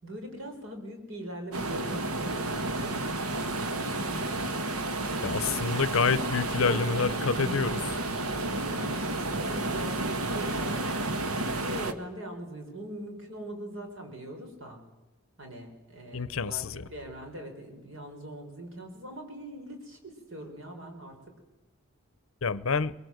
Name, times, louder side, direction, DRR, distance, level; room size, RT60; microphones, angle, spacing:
voice 1, 0.0-3.8 6.2-7.7 8.4-11.0 11.3-14.8 15.4-21.2, right 1 dB, 60° right, 5.1 m, -41 dB
sound 1, 1.5-11.9, right 2 dB, 85° right, 1.5 m, -31 dB
voice 2, 5.2-7.8 16.1-16.9 22.4-22.9, left 5 dB, 65° left, 0.7 m, -28 dB
23.0 x 21.5 x 7.9 m
head